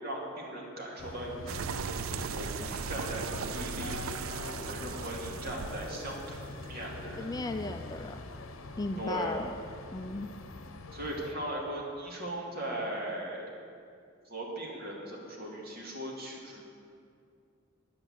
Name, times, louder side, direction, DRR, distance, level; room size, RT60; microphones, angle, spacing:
voice 1, 0.0-4.2 4.7-7.3 9.0-9.3 10.9-13.5 14.3-16.6, right 1 dB, 50° right, -3 dB, 2.5 m, -39 dB
sound 1, 1.0-11.3, left 2 dB, 85° left, 0.8 m, -43 dB
sound 2, 1.5-6.9, right 7 dB, 80° right, 0.4 m, -38 dB
voice 2, 7.2-8.2 8.8-9.5 9.9-10.3, left 2 dB, 20° left, 7 dB, 0.4 m, -35 dB
9.8 x 8.7 x 7.8 m, 2.3 s
head